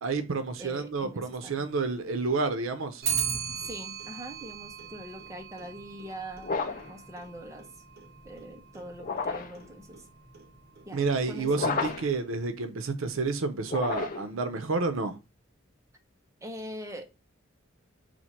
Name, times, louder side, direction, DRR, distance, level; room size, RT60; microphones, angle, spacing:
voice 1, 0.0-3.0 10.9-15.2, right 4 dB, 85° right, 0.6 m, -30 dB
voice 2, 0.6-1.6 3.6-7.7 8.2-10.1 10.8-11.8 16.4-17.1, equal, 15° right, 0.7 m, -43 dB
Clock, 3.0-12.4, right 7 dB, 50° right, 1.2 m, -39 dB
sound 1, 6.4-7.0 9.0-9.6 11.5-12.2 13.6-14.4, left 4 dB, 45° left, 0.5 m, -31 dB
4.3 x 2.5 x 4.2 m
head